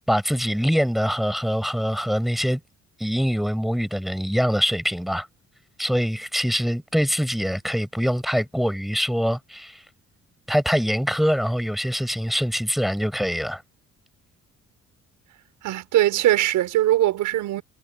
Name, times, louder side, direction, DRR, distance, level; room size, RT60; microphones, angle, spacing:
voice 1, 0.1-2.6 3.0-5.3 5.8-9.8 10.5-13.6, equal, ahead, 7.4 m, -24 dB
voice 2, 15.6-17.6, right 14 dB, 85° right, 5.6 m, -21 dB
cardioid pair, 90°, 30 cm